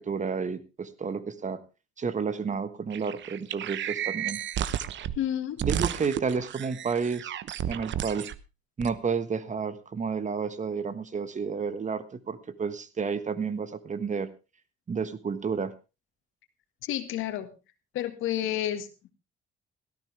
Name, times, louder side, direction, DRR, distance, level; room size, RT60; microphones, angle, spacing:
voice 1, 0.0-1.6 2.0-4.4 5.6-7.3 7.7-8.3 8.8-14.3 14.9-15.7, right 5 dB, 40° right, 14 dB, 1.5 m, -31 dB
sound 1, 2.9-5.2 5.6-8.4 8.8-8.9, right 10 dB, 70° right, 0.9 m, -32 dB
voice 2, 5.2-5.6 16.8-17.5 17.9-19.1, left 11 dB, 90° left, 9 dB, 1.8 m, -30 dB
17.0 x 13.5 x 3.4 m, 0.29 s
cardioid pair, 90°, 20 cm